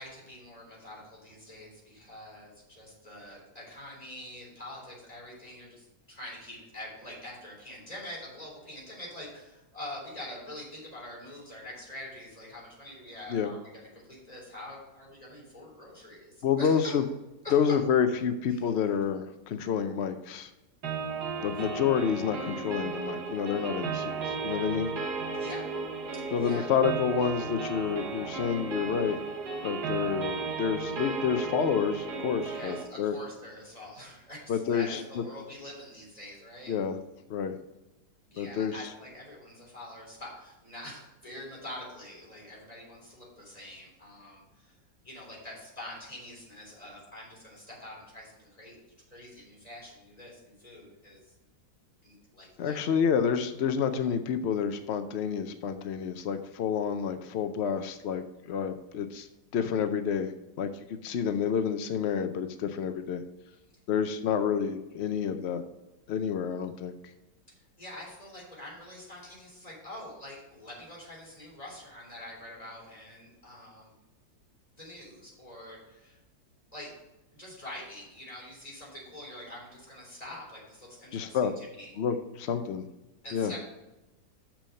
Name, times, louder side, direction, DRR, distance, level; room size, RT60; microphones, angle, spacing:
voice 1, 0.0-16.9 17.4-17.8 18.5-18.7 25.3-25.7 26.1-26.7 32.4-36.8 38.3-44.8 45.0-48.8 49.1-51.2 52.0-52.8 67.5-73.9 74.8-76.2 76.7-76.9 77.3-81.9 83.2-83.6, left 1 dB, 20° left, -5 dB, 3.9 m, -45 dB
voice 2, 16.4-17.0 17.5-20.5 21.4-24.9 26.3-29.2 29.6-33.2 34.5-35.2 36.7-37.0 37.3-37.5 38.4-38.7 52.6-59.3 59.5-60.3 60.6-63.2 63.9-65.6 66.1-66.9 81.1-81.5 82.0-82.8 83.3-83.5, left 7 dB, 85° left, 9 dB, 0.5 m, -29 dB
sound 1, 20.8-32.8, right 4 dB, 65° right, 1.8 m, -34 dB
7.1 x 6.0 x 6.4 m, 1.0 s
omnidirectional pair, 1.9 m